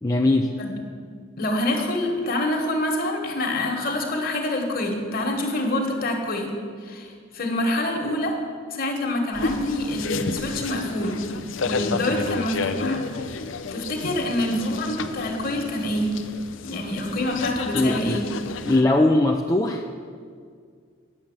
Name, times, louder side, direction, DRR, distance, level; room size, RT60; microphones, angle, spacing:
voice 1, 0.0-0.5 17.7-18.2 18.6-19.8, left 2 dB, 15° left, 1 dB, 0.4 m, -20 dB
voice 2, 1.4-8.4 8.7-11.2 11.6-13.4 13.7-16.1 16.6-18.2, left 1 dB, 45° left, 2 dB, 1.6 m, -26 dB
sound 1, 9.3-18.8, left 4 dB, 65° left, 0.6 m, -31 dB
9.7 x 7.4 x 7.2 m, 2.1 s
head